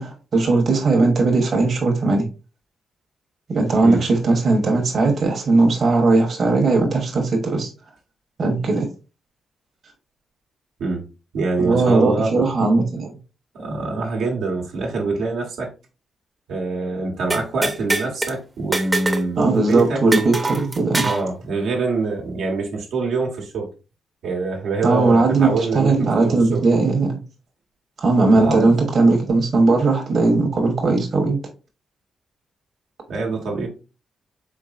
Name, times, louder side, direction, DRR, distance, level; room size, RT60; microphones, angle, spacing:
voice 1, 0.0-2.2 3.5-7.7 8.4-8.9 11.6-13.1 19.4-21.0 24.8-27.2 28.0-31.4, right 3 dB, 55° right, 1.2 m, -18 dB
voice 2, 11.3-12.3 13.5-15.7 16.5-20.0 21.0-23.7 24.2-26.6 28.3-28.7 33.1-33.7, right 3 dB, 90° right, 1.3 m, -25 dB
sound 1, 17.3-18.3 18.7-19.3 19.6-19.7 20.1-21.3, right 2 dB, 20° right, 0.7 m, -23 dB
4.6 x 3.7 x 2.5 m
cardioid pair, 90°, 0 cm